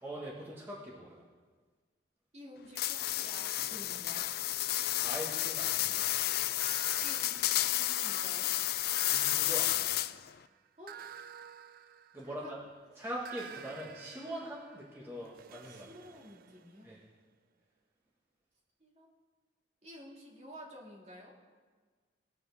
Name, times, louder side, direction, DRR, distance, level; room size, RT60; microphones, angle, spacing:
voice 1, 0.0-1.2 5.0-6.1 9.1-10.0 12.1-12.6 13.0-15.9 16.8-17.0, right 1 dB, 15° right, -5 dB, 1.4 m, -42 dB
voice 2, 2.3-4.3 7.0-8.5 10.8-11.1 12.2-12.5 15.6-16.9 18.8-19.1 19.8-21.4, equal, 40° right, -3 dB, 2.2 m, -51 dB
sound 1, 2.8-10.3, left 14 dB, 60° left, 0.3 m, -31 dB
sound 2, 6.6-8.3 9.0-12.6 13.3-17.0, right 7 dB, 55° right, 0.3 m, -51 dB
19.5 x 7.1 x 3.5 m, 1.5 s
head